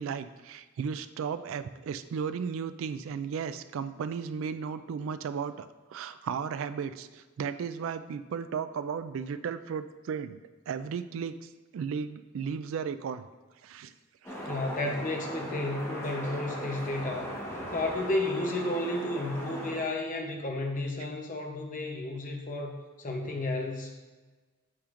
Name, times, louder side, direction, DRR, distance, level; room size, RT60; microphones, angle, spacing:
voice 1, 0.0-5.7 5.9-13.2 13.6-13.9 14.2-14.5, right 6 dB, 70° right, 12 dB, 0.3 m, -35 dB
sound 1, 14.2-19.8, equal, 15° left, 1.2 m, -38 dB
voice 2, 14.4-17.4 17.7-24.0, left 2 dB, 40° left, 2 dB, 0.8 m, -32 dB
8.6 x 5.0 x 2.5 m, 1.3 s
head